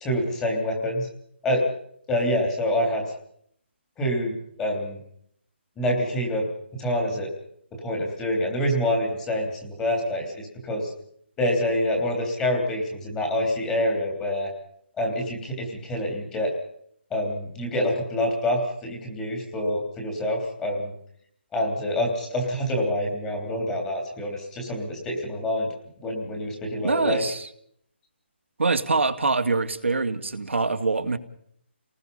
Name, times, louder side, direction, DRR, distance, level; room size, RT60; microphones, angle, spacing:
voice 1, 0.0-1.1 1.4-1.6 2.1-3.0 4.0-4.3 4.6-5.0 5.8-6.4 6.7-7.3 7.8-10.9 11.4-14.5 15.0-16.5 17.1-20.9 21.5-25.7 26.0-27.2, left 1 dB, 10° left, 1 dB, 3.3 m, -26 dB
voice 2, 26.8-27.5 28.6-31.2, right 3 dB, 85° right, 6 dB, 2.3 m, -24 dB
29.5 x 19.5 x 5.5 m, 0.69 s
hypercardioid pair, 170°, 6 cm